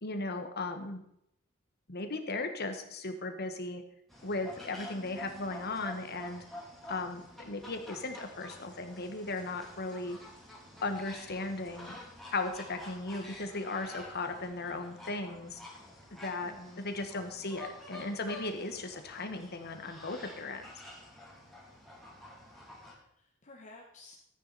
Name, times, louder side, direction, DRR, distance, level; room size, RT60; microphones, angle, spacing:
voice 1, 0.0-1.0 1.9-3.8 4.2-6.4 6.9-10.2 10.8-12.0 12.3-15.6 16.1-20.7, left 2 dB, 50° left, 7 dB, 1.5 m, -37 dB
sound 1, 4.1-22.9, left 1 dB, ahead, 3.0 m, -49 dB
voice 2, 16.4-16.8 22.6-24.1, left 2 dB, 35° left, 0 dB, 1.4 m, -53 dB
13.5 x 9.3 x 4.2 m, 0.76 s
head